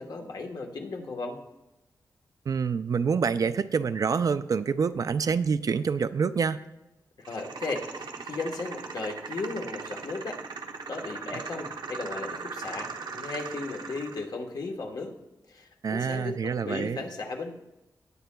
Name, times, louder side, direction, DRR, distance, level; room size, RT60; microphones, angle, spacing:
voice 1, 0.0-1.4 7.3-10.4 10.9-15.1 15.5-17.5, left 3 dB, 60° left, 3 dB, 1.2 m, -36 dB
voice 2, 2.5-6.6 15.8-17.0, right 6 dB, 50° right, 12 dB, 0.4 m, -27 dB
sound 1, 7.3-14.2, right 5 dB, 75° right, 0.9 m, -39 dB
18.0 x 8.4 x 2.3 m, 0.97 s
wide cardioid pair, 155°, 8 cm